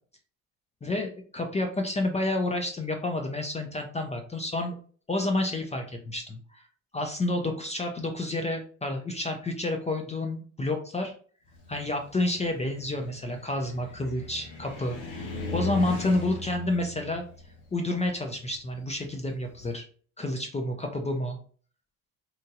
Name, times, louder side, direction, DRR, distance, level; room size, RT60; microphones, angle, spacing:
voice 1, 0.8-4.8 5.1-6.6 6.9-11.1 11.7-17.2 17.7-19.8 20.2-21.4, left 2 dB, 15° left, 4 dB, 0.5 m, -30 dB
Car, 11.5-19.7, left 2 dB, 70° left, 1.0 m, -39 dB
2.9 x 2.6 x 2.3 m, 0.43 s
hypercardioid pair, 60°, 42 cm